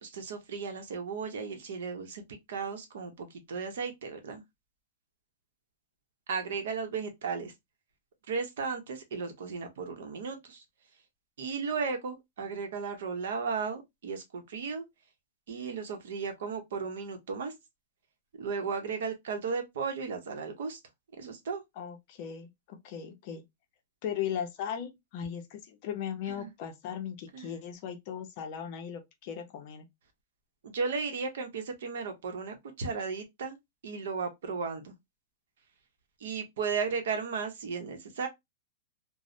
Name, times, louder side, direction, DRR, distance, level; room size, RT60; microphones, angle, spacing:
voice 1, 0.0-2.2 2.5-4.4 6.3-7.5 8.3-10.6 11.4-14.8 15.5-17.5 18.4-20.8 21.2-21.6 26.3-26.5 27.3-27.5 30.6-33.6 33.8-34.9 36.2-38.3, right 5 dB, 70° right, 0.8 m, -35 dB
voice 2, 21.8-23.4 24.0-29.8, left 8 dB, 35° left, 0.5 m, -37 dB
3.0 x 2.0 x 2.5 m
supercardioid pair, 170°, 0 cm